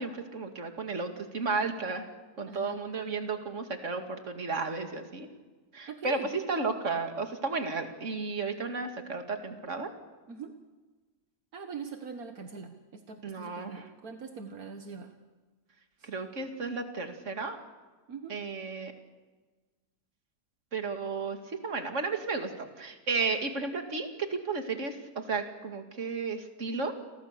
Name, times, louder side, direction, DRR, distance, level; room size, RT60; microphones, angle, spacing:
voice 1, 0.0-2.1 2.4-5.3 5.7-9.9 13.2-13.9 16.0-17.6 18.3-18.9 20.7-26.9, right 4 dB, 55° right, 6 dB, 2.6 m, -33 dB
voice 2, 2.5-2.8 5.9-6.3 10.3-10.5 11.5-15.1 16.0-16.1 18.1-18.4, right 5 dB, 75° right, 6 dB, 1.9 m, -43 dB
29.5 x 22.5 x 6.8 m, 1.3 s
omnidirectional pair, 1.5 m